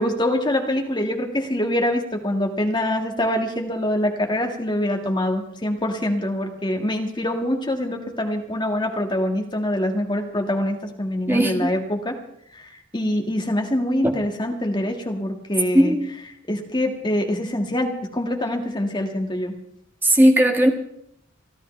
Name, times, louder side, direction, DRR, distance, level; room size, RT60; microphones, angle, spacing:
voice 1, 0.0-12.1 12.5-15.9 16.5-19.5, left 1 dB, 20° left, 2 dB, 1.7 m, -24 dB
voice 2, 11.3-11.7 15.7-16.1 20.0-20.7, right 1 dB, 10° right, 2 dB, 1.5 m, -17 dB
29.5 x 11.5 x 3.3 m, 0.72 s
head